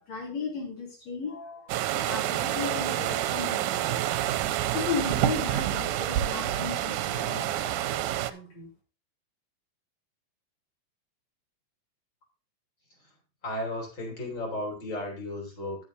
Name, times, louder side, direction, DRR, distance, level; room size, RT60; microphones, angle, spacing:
voice 1, 0.0-4.2 4.7-8.7, left 5 dB, 50° left, -2 dB, 4.2 m, -36 dB
sound 1, 1.7-8.3, right 13 dB, 80° right, 1.9 m, -28 dB
voice 2, 13.4-15.8, left 1 dB, 35° left, -1 dB, 3.9 m, -34 dB
9.8 x 9.6 x 2.7 m, 0.33 s
omnidirectional pair, 3.9 m